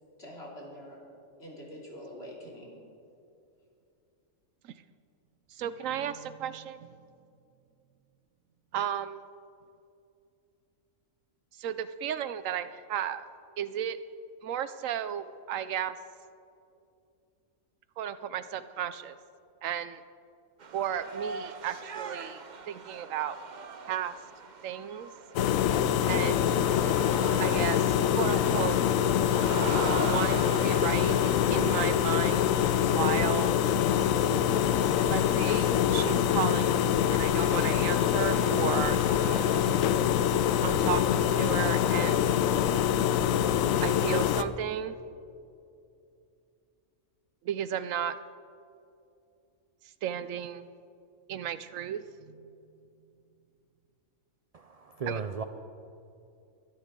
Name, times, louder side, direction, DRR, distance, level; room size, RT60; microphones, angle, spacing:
voice 1, 0.2-1.0 1.4-2.8, equal, 50° left, -3 dB, 3.3 m, -45 dB
voice 2, 5.6-6.9 8.7-9.2 11.6-13.2 13.6-14.0 14.4-15.9 18.0-19.2 19.6-20.0 20.7-22.4 22.7-23.4 23.9-24.1 24.6-25.1 26.1-26.5 27.4-28.8 30.1-32.5 32.9-33.6 35.0-39.0 40.6-42.3 43.8-44.9 47.4-48.1 50.0-50.7 51.3-52.4 55.1-55.2, right 10 dB, 75° right, 13 dB, 1.0 m, -34 dB
sound 1, 20.6-39.7, right 5 dB, 40° right, 0.8 m, -42 dB
sound 2, 25.4-44.4, left 9 dB, 80° left, 1.0 m, -25 dB
voice 3, 54.5-55.4, right 5 dB, 60° right, 8 dB, 0.4 m, -35 dB
23.5 x 12.0 x 3.7 m, 2.5 s
omnidirectional pair, 1.4 m